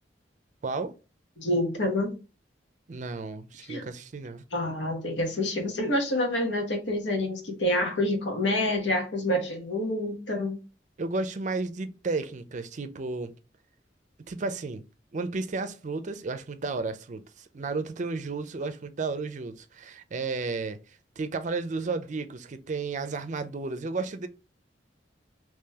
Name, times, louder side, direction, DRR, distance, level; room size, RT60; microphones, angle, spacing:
voice 1, 0.6-0.9 2.9-4.4 11.0-13.3 14.3-14.8 15.1-20.8 21.2-24.3, right 3 dB, 45° right, 0.5 m, -33 dB
voice 2, 1.4-2.1 3.7-3.8 4.5-10.6, left 1 dB, 90° left, 1.3 m, -27 dB
3.8 x 3.0 x 2.8 m
head